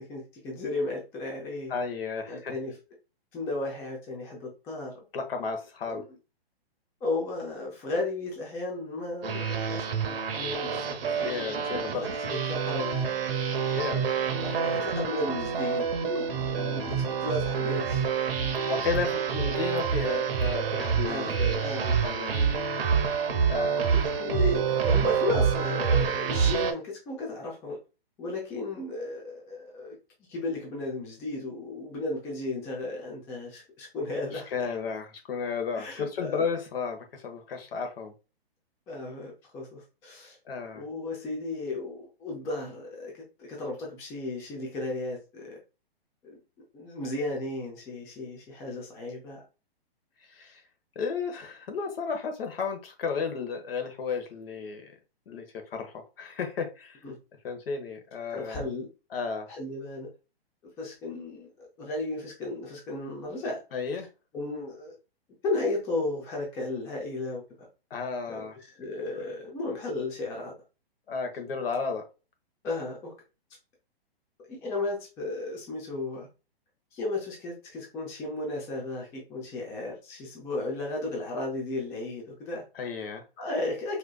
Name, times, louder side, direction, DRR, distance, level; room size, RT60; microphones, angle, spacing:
voice 1, 0.0-1.7 2.3-2.8 3.3-4.9 5.8-6.0 7.0-11.3 11.6-13.2 14.4-16.3 16.7-18.1 21.1-22.0 23.9-27.8 28.2-30.0 30.3-34.5 35.8-36.4 38.9-40.4 40.7-45.6 46.2-46.4 46.7-49.4 57.0-57.2 58.3-58.9 59.5-60.1 60.8-63.6 64.3-65.0 65.4-67.7 68.3-70.5 72.6-73.1 74.5-76.3 76.9-82.6 83.4-84.0, left 2 dB, 10° left, -1 dB, 0.4 m, -34 dB
voice 2, 1.7-2.5 5.1-6.0 11.2-12.0 13.7-14.1 16.6-17.1 18.6-22.5 23.5-23.9 34.3-38.1 40.5-40.8 50.3-50.6 50.9-54.9 55.3-55.4 55.7-57.0 57.4-58.7 59.1-59.5 63.7-64.1 67.9-68.6 69.2-69.3 71.1-72.0 82.7-83.2, left 5 dB, 65° left, 5 dB, 1.1 m, -33 dB
sound 1, 9.2-26.7, right 6 dB, 65° right, 0.8 m, -27 dB
4.3 x 2.6 x 2.2 m, 0.31 s
hypercardioid pair, 145°, 31 cm